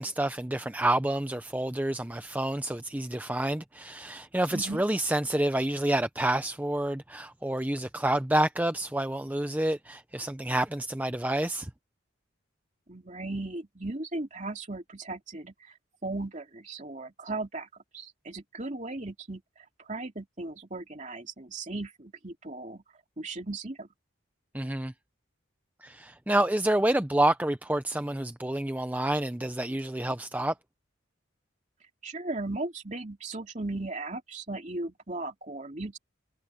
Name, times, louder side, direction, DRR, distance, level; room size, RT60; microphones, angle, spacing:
voice 1, 0.0-11.7 24.5-24.9 25.8-30.5, right 1 dB, 10° right, 0.5 m, -28 dB
voice 2, 4.5-4.8 12.9-15.7 16.0-17.7 17.9-19.4 19.8-22.8 23.2-23.9 32.0-36.0, right 2 dB, 35° right, 2.7 m, -37 dB
head